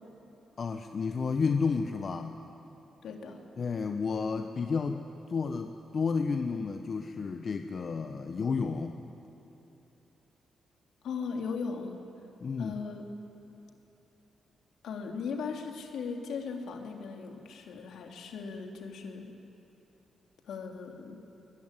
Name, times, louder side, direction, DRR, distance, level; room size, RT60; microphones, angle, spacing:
voice 1, 0.6-2.4 3.6-5.0 5.3-9.0 12.4-12.7, left 5 dB, 55° left, 6 dB, 1.2 m, -31 dB
voice 2, 3.0-3.4 11.0-12.0 12.6-13.0 14.8-19.3 20.5-21.2, left 5 dB, 80° left, 2 dB, 2.9 m, -38 dB
23.0 x 20.0 x 9.9 m, 3.0 s
supercardioid pair, 60°, 0 cm